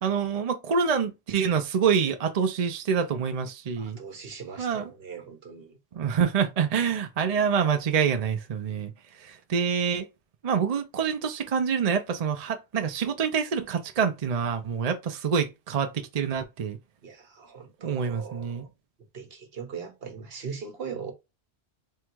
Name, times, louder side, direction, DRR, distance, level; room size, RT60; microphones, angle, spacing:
voice 1, 0.0-4.0 4.6-4.9 5.9-8.9 9.2-10.1 10.4-16.8 17.8-18.7, right 6 dB, 50° right, 0.5 m, -26 dB
voice 2, 3.8-5.8 17.0-18.7 19.1-21.1, right 6 dB, 65° right, 1.2 m, -40 dB
3.7 x 2.3 x 4.5 m
omnidirectional pair, 1.1 m